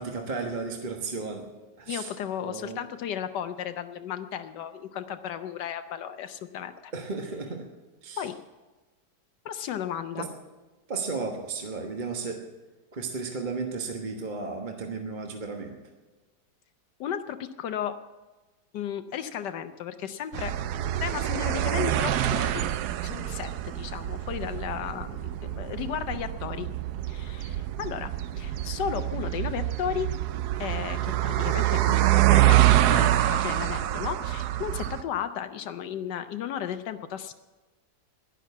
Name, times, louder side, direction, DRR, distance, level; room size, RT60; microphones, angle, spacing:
voice 1, 0.0-1.5 1.8-2.1 2.4-2.8 6.9-7.6 8.0-8.2 10.2-10.3 10.9-12.4 12.9-15.7, right 4 dB, 30° right, 3 dB, 1.4 m, -34 dB
voice 2, 1.9-6.9 8.2-8.4 9.4-10.3 17.0-17.9 18.7-20.5 21.0-22.7 23.0-26.7 27.1-28.1 28.4-30.1 30.6-37.3, left 9 dB, 80° left, 9 dB, 1.4 m, -34 dB
sound 1, 20.3-35.0, right 14 dB, 70° right, 1.2 m, -26 dB
12.0 x 11.0 x 8.4 m, 1.2 s
omnidirectional pair, 1.8 m